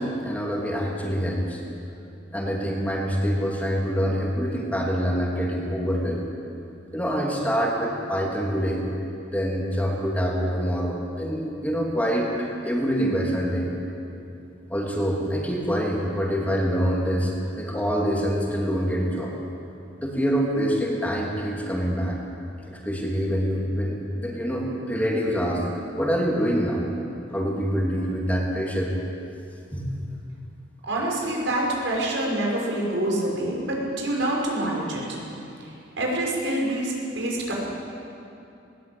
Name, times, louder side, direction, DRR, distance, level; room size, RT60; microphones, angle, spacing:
voice 1, 0.0-1.6 2.3-6.3 6.9-8.8 9.2-12.3 12.6-13.7 14.7-19.3 20.0-22.2 22.7-25.6 26.0-26.8 27.3-28.9 29.7-29.9, equal, 10° left, -2 dB, 3.0 m, -25 dB
voice 2, 30.8-35.2 36.0-37.5, right 1 dB, 85° right, -2 dB, 5.8 m, -26 dB
20.0 x 19.0 x 8.7 m, 2.8 s
head